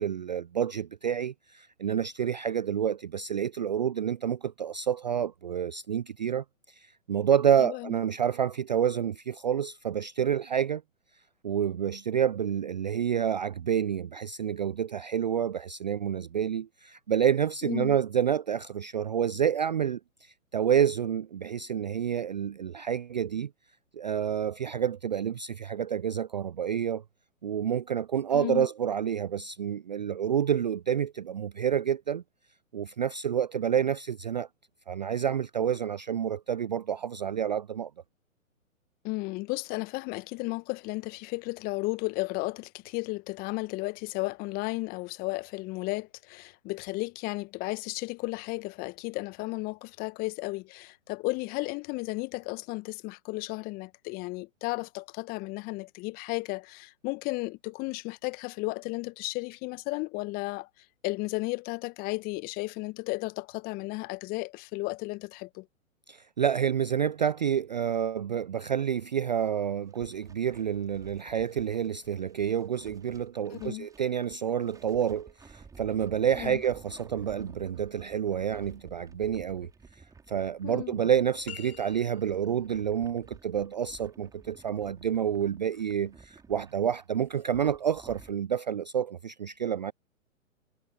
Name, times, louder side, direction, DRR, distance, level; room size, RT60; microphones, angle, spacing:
voice 1, 0.0-10.8 11.4-23.5 23.9-27.0 27.4-32.2 32.7-34.5 34.9-37.9 66.1-79.7 80.3-89.9, right 9 dB, 35° right, 0.4 m, -29 dB
voice 2, 7.6-7.9 17.6-18.0 28.3-28.7 39.0-60.7 61.0-65.6 73.5-73.9 76.4-76.6 80.6-80.9, left 23 dB, 20° left, 1.3 m, -34 dB
sound 1, 69.8-88.3, right 5 dB, 10° right, 5.4 m, -54 dB
sound 2, 81.4-82.6, left 12 dB, 45° left, 2.1 m, -46 dB
figure-of-eight pair, 125°, 41 cm